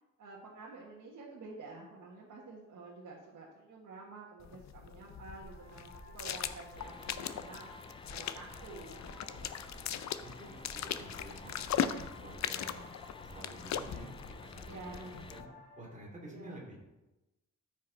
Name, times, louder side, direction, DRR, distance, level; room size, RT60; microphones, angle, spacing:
voice 1, 0.2-9.0 9.2-9.6 11.4-11.6 14.7-15.1 16.3-16.7, right 3 dB, 70° right, -5 dB, 1.6 m, -50 dB
sound 1, 4.4-15.5, left 9 dB, 65° left, 0.6 m, -40 dB
sound 2, 5.4-15.8, left 1 dB, 35° left, 2.4 m, -53 dB
sound 3, 6.8-15.4, left 4 dB, 20° left, 0.4 m, -53 dB
voice 2, 10.2-12.8 13.2-14.1 14.4-15.5 15.8-16.8, right 1 dB, 25° right, -2 dB, 2.7 m, -50 dB
13.5 x 5.4 x 4.0 m, 1.0 s
wide cardioid pair, 140°, 30 cm